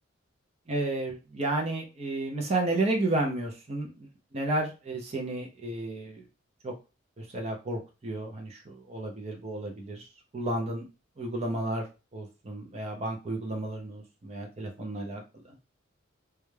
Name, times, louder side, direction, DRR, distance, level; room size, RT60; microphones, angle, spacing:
voice 1, 0.7-4.1 4.3-6.2 6.6-6.7 7.2-10.1 10.3-10.8 11.2-11.9 12.1-15.2, right 2 dB, 35° right, 2 dB, 0.4 m, -32 dB
2.2 x 2.2 x 3.1 m, 0.30 s
head